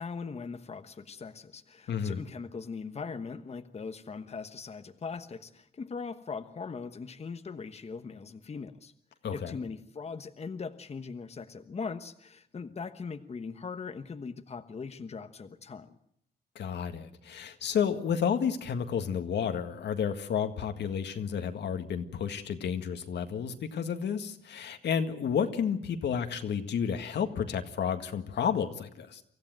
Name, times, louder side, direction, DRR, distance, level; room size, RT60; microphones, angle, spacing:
voice 1, 0.0-8.9 9.3-16.0, left 5 dB, 35° left, 8 dB, 1.2 m, -40 dB
voice 2, 1.9-2.2 9.2-9.5 16.6-29.2, left 7 dB, 80° left, 7 dB, 1.9 m, -31 dB
25.0 x 15.0 x 9.1 m, 0.73 s
cardioid pair, 105°, 18 cm